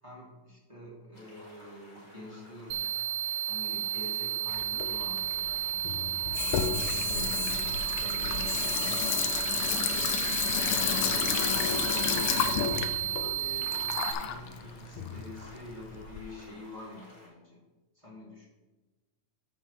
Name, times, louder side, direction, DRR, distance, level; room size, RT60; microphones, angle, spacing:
voice 1, 0.0-2.8 3.5-7.7 8.0-9.0 9.6-10.2 10.7-12.7 13.2-17.6 17.9-18.5, left 1 dB, 10° right, -6 dB, 2.4 m, -47 dB
sound 1, 1.1-17.3, equal, 15° left, 2.5 m, -54 dB
sound 2, 2.7-14.1, right 11 dB, 75° right, 1.4 m, -32 dB
Water tap faucet / Sink (filling or washing), 4.5-16.2, left 9 dB, 80° left, 1.9 m, -31 dB
14.0 x 5.5 x 3.5 m, 1.2 s
omnidirectional pair, 3.7 m